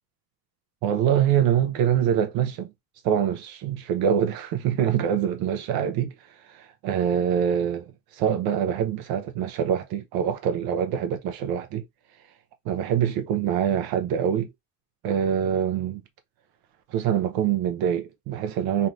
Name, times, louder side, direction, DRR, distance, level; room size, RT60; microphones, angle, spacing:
voice 1, 0.8-2.7 3.0-6.1 6.4-11.8 12.7-14.5 15.0-16.0 16.9-18.9, right 9 dB, 55° right, 0.5 m, -24 dB
3.1 x 2.5 x 2.6 m
cardioid pair, 165°, 46 cm